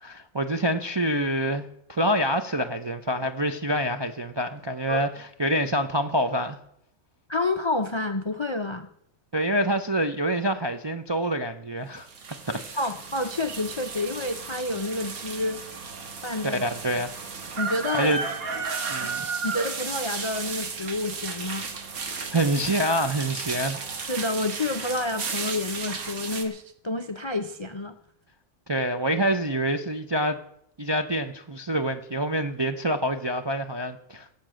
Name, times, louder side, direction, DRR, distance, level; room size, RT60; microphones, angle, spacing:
voice 1, 0.0-6.6 9.3-12.1 12.5-12.6 16.6-17.1 17.9-18.2 18.9-19.3 22.3-23.8 28.7-30.4 30.8-34.3, right 1 dB, 35° right, 5 dB, 0.4 m, -26 dB
voice 2, 7.3-8.9 12.8-15.6 16.2-16.6 17.6-18.2 19.0-19.1 19.4-21.7 24.1-27.9, left 2 dB, 45° left, 9 dB, 0.3 m, -29 dB
sound 1, 12.0-26.4, right 4 dB, 90° right, 1.9 m, -34 dB
17.0 x 7.4 x 7.5 m, 0.74 s
omnidirectional pair, 1.5 m